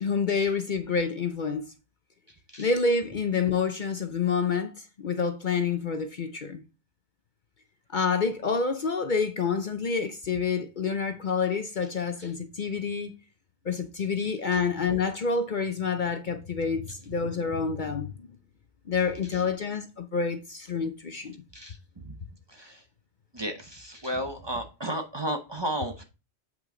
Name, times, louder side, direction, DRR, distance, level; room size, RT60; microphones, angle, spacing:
voice 1, 0.0-1.7 2.6-6.6 7.9-13.1 13.6-18.3 18.9-21.4, left 5 dB, 50° left, 0.8 m, -28 dB
voice 2, 23.3-26.0, right 1 dB, 25° right, 0.9 m, -33 dB
7.8 x 5.9 x 3.8 m
omnidirectional pair, 1.2 m